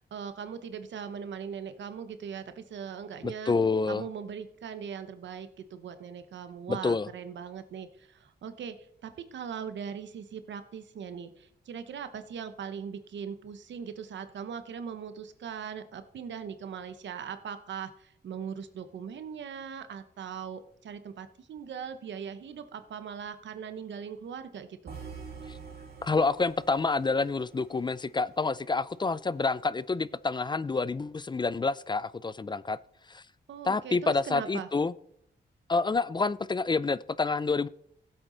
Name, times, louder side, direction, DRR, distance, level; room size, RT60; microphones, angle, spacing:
voice 1, 0.1-3.5 3.9-24.9 33.5-34.7, right 7 dB, 90° right, 10 dB, 0.9 m, -40 dB
voice 2, 3.2-4.1 6.7-7.1 25.5-25.6 26.0-32.8 33.1-33.2 33.6-34.9 35.7-37.7, left 4 dB, 25° left, 18 dB, 0.4 m, -28 dB
sound 1, 24.9-29.0, right 5 dB, 60° right, 2.5 m, -47 dB
16.0 x 7.9 x 3.9 m, 0.73 s
cardioid pair, 85°, 18 cm